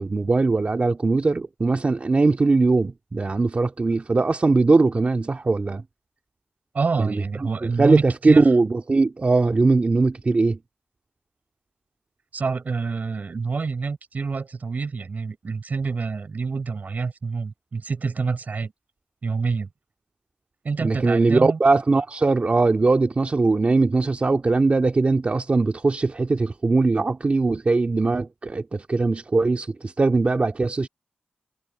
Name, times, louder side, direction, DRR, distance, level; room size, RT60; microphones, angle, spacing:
voice 1, 0.0-5.8 7.0-7.2 7.6-10.6 20.8-30.9, right 3 dB, 45° right, 2.1 m, -20 dB
voice 2, 6.7-8.5 12.3-18.7 19.2-19.7 20.6-21.6, right 4 dB, 65° right, 6.6 m, -27 dB
cardioid pair, 50°, 3 cm